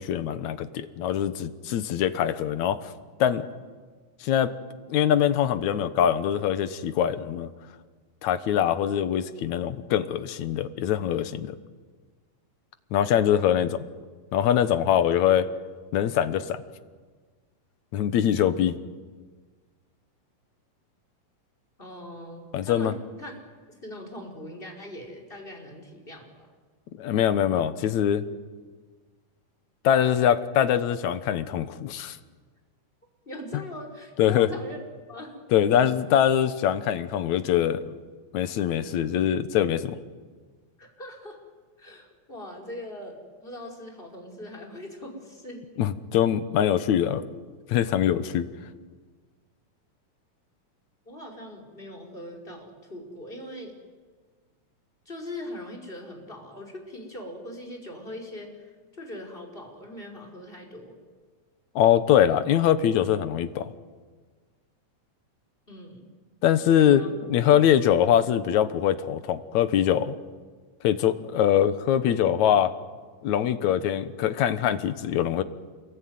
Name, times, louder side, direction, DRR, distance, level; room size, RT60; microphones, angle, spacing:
voice 1, 0.0-2.9 3.2-3.4 4.2-4.5 4.9-7.5 8.2-11.6 12.9-13.8 14.3-15.5 15.9-16.6 17.9-18.8 22.5-22.9 27.0-28.2 29.8-32.2 34.2-34.5 35.5-37.8 38.3-40.0 45.8-47.2 47.7-48.5 61.8-63.7 66.4-67.0 67.3-70.2 70.8-72.7 73.2-75.4, left 10 dB, 70° left, 12 dB, 2.4 m, -23 dB
voice 2, 21.8-23.3 23.7-26.5 33.2-34.8 35.1-35.4 40.8-41.4 41.8-45.7 51.1-53.8 55.0-61.0 65.7-66.1 66.9-67.1, left 1 dB, 15° left, 1 dB, 5.0 m, -41 dB
28.5 x 22.0 x 9.5 m, 1.5 s
omnidirectional pair, 3.5 m